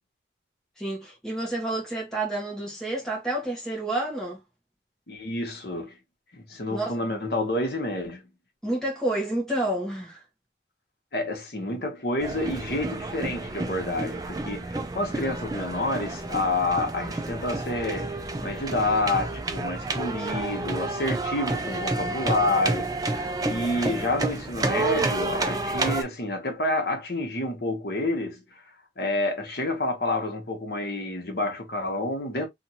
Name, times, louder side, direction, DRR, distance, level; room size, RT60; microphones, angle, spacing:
voice 1, 0.8-4.4 6.7-6.8 8.6-10.2 20.2-20.3, right 1 dB, 5° left, 1.0 m, -29 dB
voice 2, 5.1-5.9 6.3-8.2 11.1-28.6 29.0-32.5, left 2 dB, 60° left, 1.0 m, -29 dB
sound 1, 12.2-26.0, right 2 dB, 20° right, 0.4 m, -30 dB
2.9 x 2.5 x 2.7 m
head